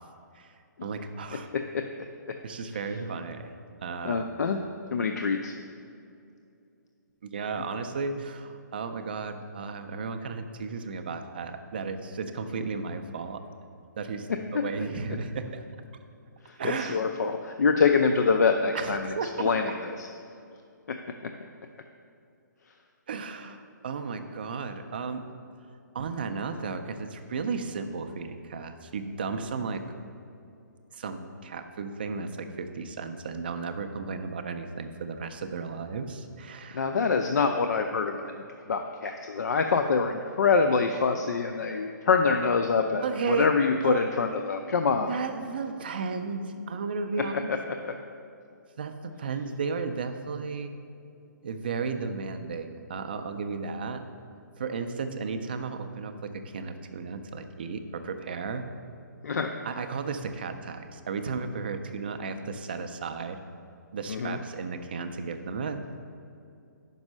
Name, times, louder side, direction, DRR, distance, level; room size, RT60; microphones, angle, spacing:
voice 1, 0.8-1.5 2.4-3.5 3.8-4.2 7.2-13.4 14.0-15.6 16.5-17.0 18.7-19.5 23.1-25.2 25.9-29.8 30.9-36.9 43.0-43.5 43.8-44.2 45.1-47.5 48.8-50.8 51.4-54.0 54.6-58.6 59.6-63.4 63.9-65.8, right 5 dB, 30° right, 7 dB, 0.3 m, -34 dB
voice 2, 4.0-4.6 4.9-5.5 16.5-19.1 19.4-20.1 20.9-21.0 36.7-38.3 38.7-45.2 47.5-47.6 47.8-47.9 59.2-59.5 64.1-64.4, left 5 dB, 60° left, 5 dB, 0.4 m, -25 dB
5.4 x 5.2 x 6.0 m, 2.5 s
hypercardioid pair, 175°, 10 cm